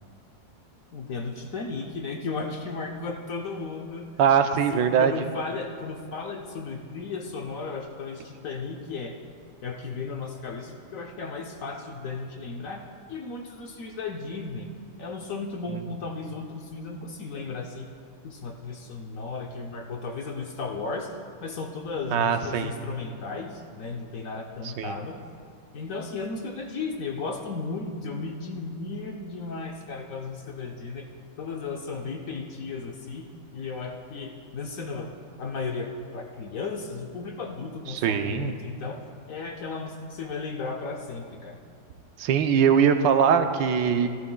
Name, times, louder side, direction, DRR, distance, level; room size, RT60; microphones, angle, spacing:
voice 1, 0.9-4.1 4.7-9.2 9.6-14.7 15.0-17.9 18.2-21.1 21.4-25.2 25.7-31.1 31.4-35.1 35.4-41.6, left 4 dB, 60° left, 2 dB, 0.9 m, -35 dB
voice 2, 4.2-5.1 22.1-22.7 24.8-24.9 37.9-38.5 42.2-44.1, right 7 dB, 80° right, 7 dB, 1.3 m, -21 dB
15.0 x 14.5 x 2.2 m, 2.2 s
omnidirectional pair, 2.0 m